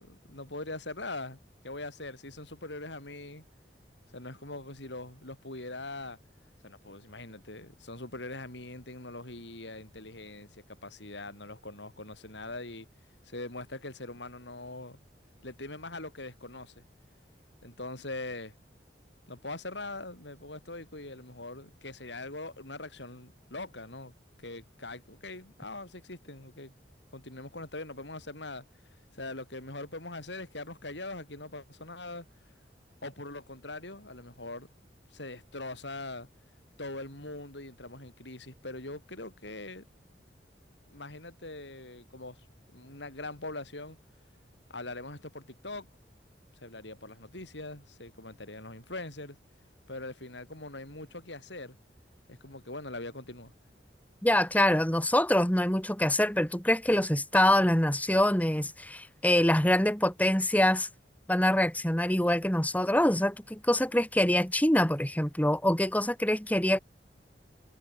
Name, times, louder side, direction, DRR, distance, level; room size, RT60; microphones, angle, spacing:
voice 1, 0.0-1.4 1.6-3.5 4.1-6.2 6.6-12.9 13.2-15.0 15.4-16.8 17.6-18.5 19.3-24.1 24.4-26.7 27.1-28.6 29.1-32.3 33.0-34.7 35.1-36.3 36.8-39.8 40.9-42.4 42.7-44.0 44.7-45.9 46.6-49.4 49.9-51.8 52.3-53.5, left 2 dB, 90° left, 7.5 m, -42 dB
voice 2, 54.2-60.9 61.3-66.8, left 1 dB, 10° left, 2.6 m, -25 dB
head